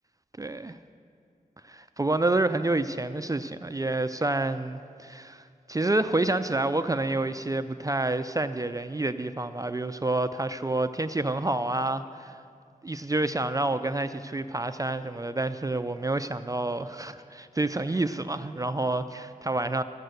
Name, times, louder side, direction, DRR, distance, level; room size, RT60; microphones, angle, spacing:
voice 1, 0.4-0.8 2.0-12.4 12.8-19.8, right 2 dB, 25° right, 10 dB, 0.4 m, -28 dB
13.5 x 7.7 x 8.1 m, 2.4 s
wide cardioid pair, 75°, 15 cm